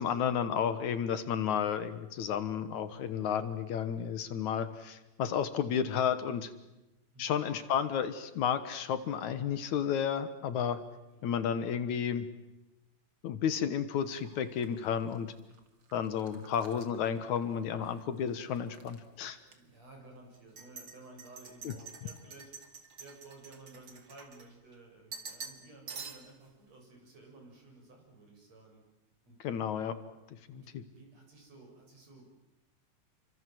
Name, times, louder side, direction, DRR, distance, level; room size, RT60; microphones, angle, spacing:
voice 1, 0.0-6.5 7.2-10.8 11.2-12.3 13.2-15.3 15.9-19.4 21.6-21.7 29.4-30.0 30.5-30.6, left 8 dB, 70° left, 11 dB, 2.7 m, -32 dB
voice 2, 7.1-7.5 11.1-11.4 19.5-28.8 29.2-29.8 30.5-32.2, right 2 dB, 55° right, 1 dB, 8.7 m, -55 dB
sound 1, 14.1-18.0 18.3-19.0 19.5-19.6 20.3-24.8 25.1-25.6 25.9-26.5, right 5 dB, 40° right, 2.8 m, -48 dB
29.5 x 25.0 x 7.8 m, 0.99 s
omnidirectional pair, 3.6 m